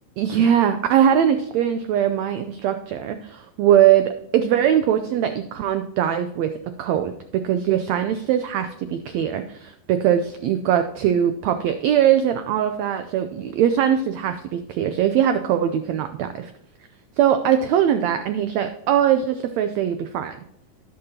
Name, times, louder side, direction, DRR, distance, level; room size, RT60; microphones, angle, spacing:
voice 1, 0.2-6.5 6.8-16.5 17.2-20.3, right 10 dB, 85° right, 9 dB, 1.5 m, -21 dB
11.5 x 10.5 x 2.8 m, 0.78 s
omnidirectional pair, 3.8 m